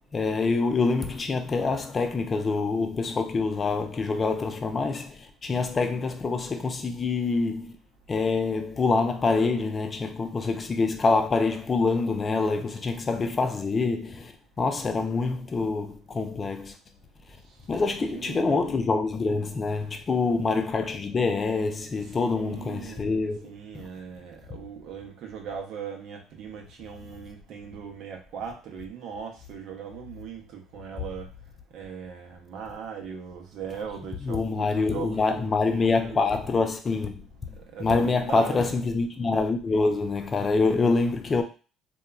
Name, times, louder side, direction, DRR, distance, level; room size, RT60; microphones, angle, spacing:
voice 1, 0.1-7.7 8.1-16.7 17.7-23.5 34.2-37.2 37.8-41.4, left 4 dB, 30° left, 0.5 m, -26 dB
voice 2, 18.0-18.9 22.0-31.3 31.7-36.2 37.6-38.7, right 7 dB, 70° right, 0.7 m, -39 dB
2.9 x 2.2 x 2.3 m
supercardioid pair, 90°, 0 cm